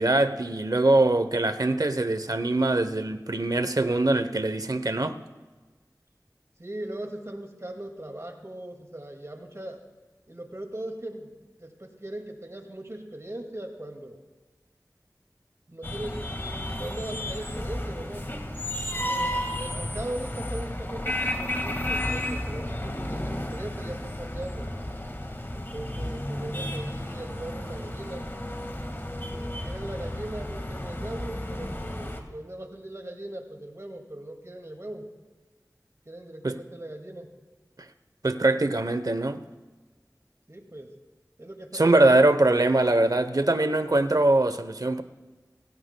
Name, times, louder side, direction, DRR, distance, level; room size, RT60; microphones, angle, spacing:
voice 1, 0.0-5.1 36.4-36.5 38.2-39.4 41.7-45.0, right 2 dB, 65° right, 10 dB, 0.8 m, -22 dB
voice 2, 6.6-9.8 10.3-11.3 11.6-14.2 15.7-16.3 16.8-18.3 18.9-24.7 25.5-28.3 29.3-35.1 36.1-37.3 40.5-40.9 41.4-42.3, right 1 dB, 45° right, 4 dB, 2.1 m, -39 dB
sound 1, 15.8-32.2, left 1 dB, 35° left, 1.7 m, -33 dB
21.5 x 16.5 x 2.2 m, 1.3 s
wide cardioid pair, 40°, 7 cm